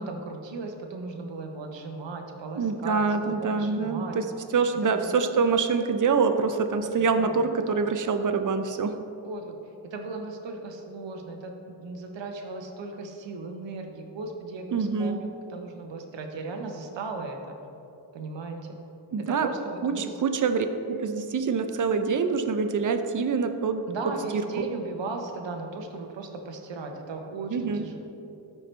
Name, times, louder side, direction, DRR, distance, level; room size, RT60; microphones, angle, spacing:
voice 1, 0.0-4.2 4.8-5.1 7.1-7.5 9.2-9.6 9.8-17.4 18.1-18.8 19.2-20.1 23.9-28.0, right 3 dB, 65° right, 3 dB, 1.1 m, -37 dB
voice 2, 2.5-4.3 4.5-9.0 14.7-15.2 19.1-19.5 19.8-23.9 24.3-24.6 27.5-27.9, right 5 dB, 40° right, 8 dB, 0.7 m, -25 dB
13.5 x 4.9 x 3.3 m, 2.8 s
cardioid pair, 85°, 48 cm